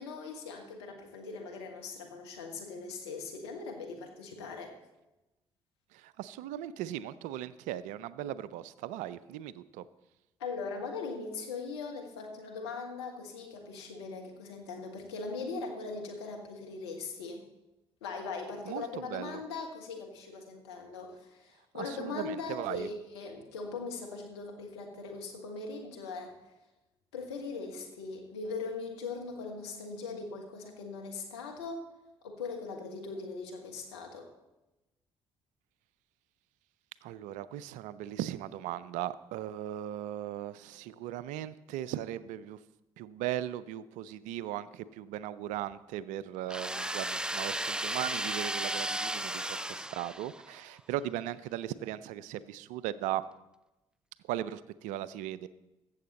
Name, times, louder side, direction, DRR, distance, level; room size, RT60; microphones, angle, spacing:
voice 1, 0.0-4.7 10.4-17.5 18.0-26.3 27.1-31.8 32.2-34.3, left 4 dB, 80° left, 1 dB, 1.3 m, -40 dB
voice 2, 5.9-9.8 18.7-19.4 21.7-22.9 37.0-42.6 43.0-53.2 54.2-55.5, right 12 dB, 70° right, 17 dB, 0.4 m, -38 dB
sound 1, 46.5-50.6, right 1 dB, 5° right, 0.4 m, -34 dB
15.0 x 7.2 x 4.1 m, 0.99 s
hypercardioid pair, 45°, 14 cm